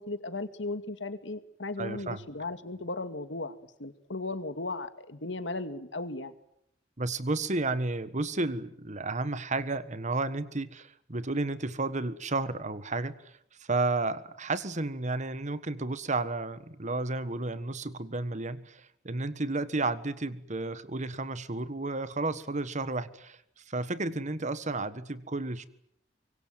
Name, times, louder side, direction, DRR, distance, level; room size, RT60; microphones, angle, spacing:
voice 1, 0.0-6.3, left 2 dB, 90° left, 10 dB, 2.2 m, -36 dB
voice 2, 1.8-2.3 7.0-13.3 13.7-23.4 23.7-25.7, right 2 dB, 40° right, 14 dB, 1.5 m, -32 dB
25.0 x 23.5 x 9.2 m, 0.73 s
head